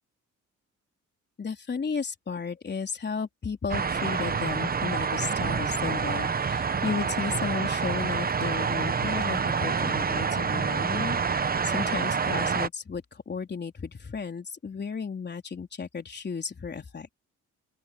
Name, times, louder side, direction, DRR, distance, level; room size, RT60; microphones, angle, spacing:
voice 1, 1.4-11.2 11.6-17.1, left 5 dB, 35° left, 3.9 m, -34 dB
sound 1, 3.7-12.7, right 5 dB, 30° right, 1.1 m, -27 dB
open air
cardioid pair, 90°, 30 cm